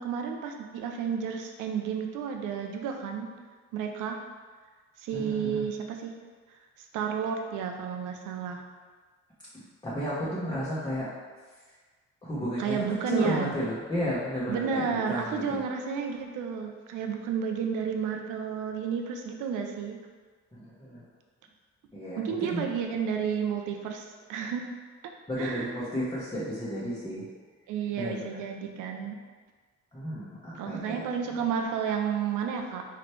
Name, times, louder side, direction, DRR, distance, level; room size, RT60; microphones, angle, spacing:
voice 1, 0.0-3.3 3.7-4.2 5.0-6.2 6.9-8.6 12.6-13.5 14.5-20.0 22.2-24.7 25.0-25.1 25.4-25.8 27.7-29.2 30.5-32.9, right 7 dB, 85° right, 4 dB, 0.6 m, -31 dB
voice 2, 5.1-5.6 9.8-11.1 12.2-12.8 13.1-15.6 20.5-21.0 21.9-22.6 25.3-27.3 28.0-28.4 29.9-31.0, equal, 15° left, -9 dB, 1.0 m, -32 dB
4.1 x 3.2 x 3.1 m, 1.4 s
cardioid pair, 90°, 30 cm